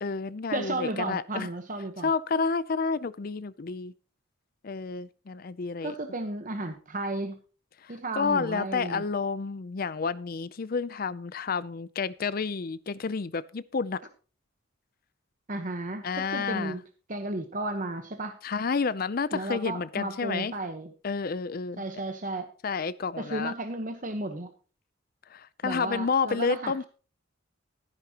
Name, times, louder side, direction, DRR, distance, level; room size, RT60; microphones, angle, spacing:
voice 1, 0.0-1.5 2.0-3.9 4.6-5.9 7.8-14.0 16.0-16.8 18.4-20.5 21.0-21.8 22.6-23.5 25.3-26.8, left 5 dB, 45° left, 0.5 m, -30 dB
voice 2, 0.5-2.1 5.8-7.4 7.9-9.0 15.5-16.8 17.1-18.4 19.3-20.9 21.8-22.5 23.2-24.5 25.6-26.9, right 2 dB, 40° right, 1.1 m, -33 dB
14.0 x 11.0 x 2.9 m
head